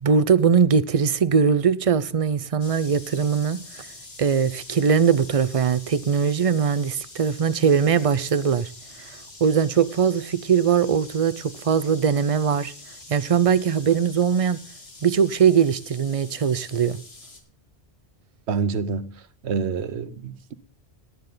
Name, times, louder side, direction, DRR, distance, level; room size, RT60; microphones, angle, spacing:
voice 1, 0.0-3.9 4.2-8.7 9.0-12.7 13.1-14.6 15.0-17.0, right 7 dB, 40° right, 0.6 m, -21 dB
sound 1, 2.6-17.4, left 3 dB, 65° left, 2.4 m, -45 dB
voice 2, 18.5-19.1 19.4-20.5, right 5 dB, 75° right, 1.1 m, -27 dB
17.5 x 9.5 x 3.9 m
omnidirectional pair, 1.1 m